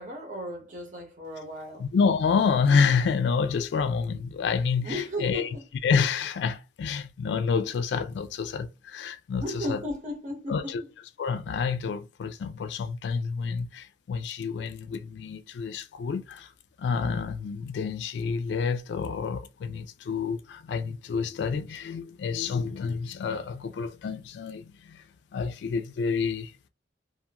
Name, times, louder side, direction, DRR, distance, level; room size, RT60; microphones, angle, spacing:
voice 1, 0.0-1.9 4.8-5.7 9.4-10.9, left 1 dB, 45° right, 0.8 m, -35 dB
voice 2, 1.8-5.5 5.8-9.8 10.5-10.8 11.2-16.5 16.8-25.0 25.3-26.7, left 5 dB, 80° left, 0.3 m, -28 dB
2.5 x 2.4 x 2.8 m
head